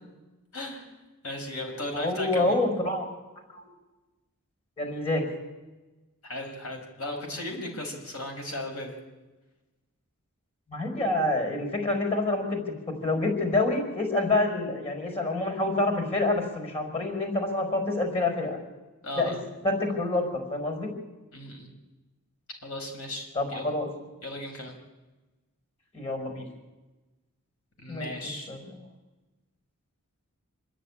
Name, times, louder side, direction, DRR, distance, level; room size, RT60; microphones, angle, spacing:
voice 1, 0.5-0.9 1.2-2.6 6.2-9.0 19.0-19.4 21.3-21.7 22.6-23.7 24.2-24.7 27.8-28.5, left 1 dB, 70° left, 2 dB, 5.2 m, -36 dB
voice 2, 1.9-3.1 3.5-3.7 4.8-5.2 10.7-12.7 13.0-18.6 19.2-19.3 19.6-20.2 20.5-20.9 23.3-23.9 25.9-26.4 27.9-28.1 28.5-28.8, left 2 dB, 25° left, 3 dB, 5.3 m, -27 dB
27.0 x 10.0 x 9.9 m, 1.1 s
head